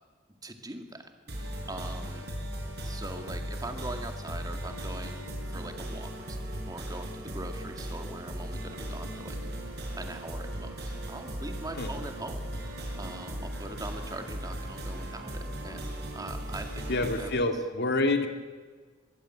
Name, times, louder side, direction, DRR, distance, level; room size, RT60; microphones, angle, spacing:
voice 1, 0.4-2.3 2.8-9.4 10.0-16.9 17.2-17.3, right 2 dB, 20° right, 5 dB, 2.2 m, -42 dB
sound 1, 1.3-17.3, right 1 dB, 55° right, 5.8 m, -37 dB
voice 2, 16.9-18.3, left 2 dB, 60° left, 6 dB, 2.4 m, -27 dB
22.5 x 15.5 x 9.0 m, 1.5 s
head